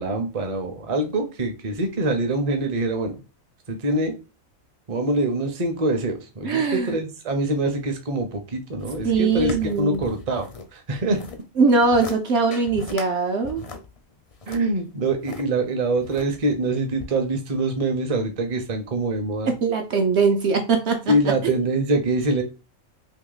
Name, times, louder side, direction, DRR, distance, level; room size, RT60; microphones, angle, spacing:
voice 1, 0.0-3.1 3.7-4.1 4.9-11.2 14.5-19.5 21.1-22.4, right 2 dB, 35° right, 0.6 m, -24 dB
voice 2, 6.4-6.9 9.0-10.0 11.6-13.6 19.5-21.1 21.4-21.5, right 4 dB, 65° right, 0.8 m, -21 dB
sound 1, 8.8-10.7 10.9-11.4 11.8-12.2 12.5-13.1 13.4-15.4 16.0-16.6 17.0-17.1, left 4 dB, 45° left, 0.4 m, -37 dB
3.0 x 2.9 x 3.9 m
omnidirectional pair, 1.4 m